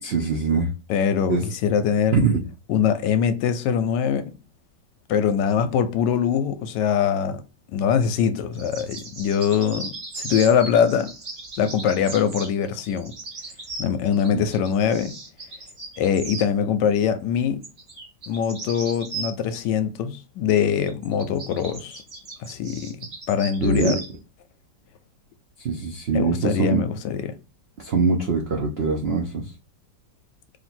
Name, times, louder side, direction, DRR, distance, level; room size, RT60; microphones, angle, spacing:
voice 1, 0.0-0.7 1.3-1.4 2.1-2.4 14.3-14.4 23.6-23.9 25.6-26.8 27.8-29.4, right 4 dB, 85° right, 0.5 m, -23 dB
voice 2, 0.9-2.2 2.7-4.3 5.1-7.4 7.7-11.1 11.6-13.1 13.8-15.1 16.0-17.6 18.3-22.0 22.4-23.0 23.3-24.0 26.1-27.3, left 7 dB, 75° left, 1.2 m, -23 dB
sound 1, 8.5-16.5 17.6-19.6 20.9-24.1, right 3 dB, 40° right, 1.4 m, -37 dB
3.0 x 2.9 x 4.2 m
omnidirectional pair, 2.0 m